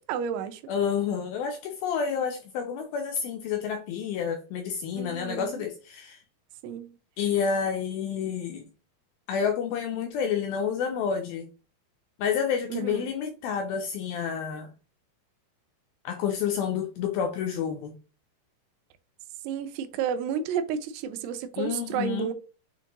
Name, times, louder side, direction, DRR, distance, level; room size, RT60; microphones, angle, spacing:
voice 1, 0.1-0.6 4.9-5.6 6.6-7.0 12.7-13.1 19.4-22.3, right 8 dB, 85° right, 2.6 m, -31 dB
voice 2, 0.7-6.2 7.2-8.7 9.3-11.5 12.2-14.7 16.0-17.9 21.6-22.3, left 7 dB, 85° left, 2.1 m, -29 dB
7.0 x 2.6 x 2.9 m
omnidirectional pair, 4.7 m